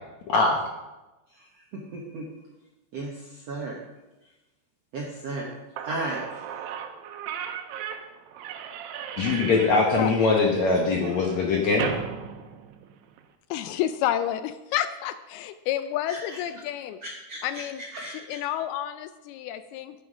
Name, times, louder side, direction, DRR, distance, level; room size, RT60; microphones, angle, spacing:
voice 1, 0.3-0.6 9.2-11.9, left 3 dB, 65° left, 0 dB, 1.8 m, -22 dB
voice 2, 1.7-2.3 2.9-3.8 4.9-5.5 5.8-6.4 16.1-16.2 17.0-17.6 17.9-18.4, right 2 dB, 70° right, -2 dB, 1.5 m, -35 dB
Slam / Squeak, 5.5-5.6 5.8-13.2, right 8 dB, 85° right, 2.9 m, -36 dB
voice 3, 13.5-17.0 17.4-17.8 18.1-19.9, left 11 dB, 85° left, 11 dB, 2.3 m, -30 dB
9.6 x 9.6 x 5.1 m, 1.0 s
omnidirectional pair, 4.7 m